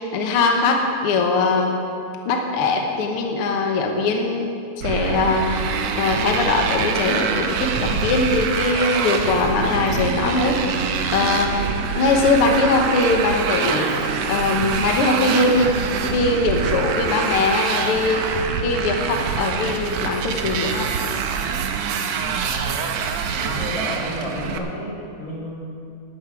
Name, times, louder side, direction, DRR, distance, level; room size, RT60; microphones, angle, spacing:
voice 1, 0.0-1.8 2.2-4.5 4.8-5.7 6.0-15.7 16.0-18.3 18.6-20.9, left 3 dB, 60° left, 2 dB, 1.6 m, -21 dB
Motorcycle, 4.8-24.6, right 6 dB, 75° right, 1.7 m, -25 dB
voice 2, 22.1-22.7 23.2-25.7, equal, 25° left, -7 dB, 3.6 m, -32 dB
14.0 x 11.5 x 4.8 m, 2.4 s
omnidirectional pair, 3.7 m